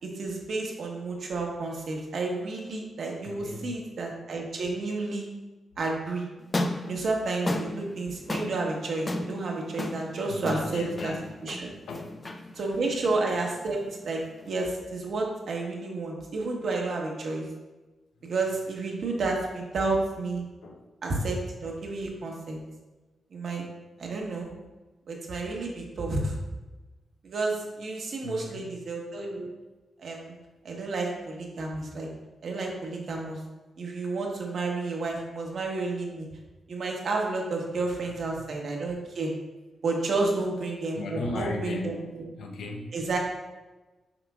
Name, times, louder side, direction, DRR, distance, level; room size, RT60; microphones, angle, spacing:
voice 1, 0.0-5.3 5.8-6.2 6.8-11.1 11.4-11.7 12.5-17.5 18.2-20.4 21.0-22.6 23.3-23.6 24.0-24.5 25.1-26.3 27.2-29.5 30.0-30.3 30.6-32.1 32.4-33.4 33.8-36.3 36.7-39.3 39.8-42.2 42.9-43.2, right 3 dB, 55° right, 0 dB, 1.2 m, -31 dB
voice 2, 3.2-3.7 10.2-12.1 12.7-12.8 20.6-20.9 28.2-28.7 38.2-38.4 40.9-42.9, left 2 dB, 85° left, 2 dB, 0.9 m, -37 dB
sound 1, 6.4-14.7, left 2 dB, 20° left, 0.4 m, -35 dB
7.9 x 5.9 x 2.4 m, 1.1 s
wide cardioid pair, 155°, 0 cm